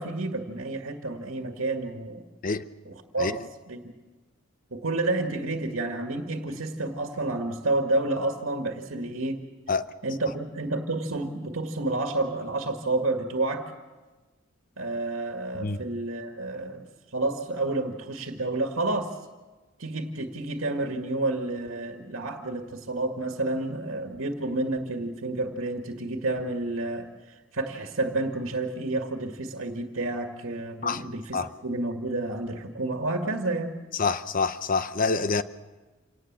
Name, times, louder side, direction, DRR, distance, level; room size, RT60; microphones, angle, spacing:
voice 1, 0.0-2.2 2.9-3.4 3.7-3.9 4.7-9.4 10.0-13.7 14.8-16.8 17.1-19.2 19.8-27.1 27.5-33.8, right 2 dB, 80° right, 1.9 m, -30 dB
voice 2, 34.0-35.4, left 4 dB, 45° left, 0.8 m, -26 dB
27.0 x 18.5 x 7.5 m
head